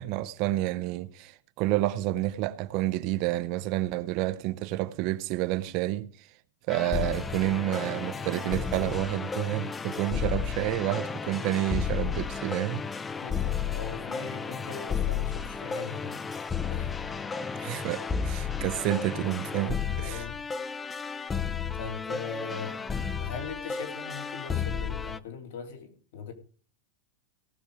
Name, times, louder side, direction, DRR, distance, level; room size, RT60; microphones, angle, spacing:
voice 1, 0.0-6.3 6.7-12.9 17.6-20.2, right 15 dB, 45° right, 0.7 m, -29 dB
sound 1, 6.7-25.2, left 6 dB, 10° left, 0.5 m, -33 dB
voice 2, 13.2-16.2 16.7-17.3 20.0-20.4 21.1-21.4 21.8-22.8 23.2-26.3, left 6 dB, 65° left, 3.3 m, -40 dB
18.0 x 7.0 x 4.8 m
supercardioid pair, 160°, 0 cm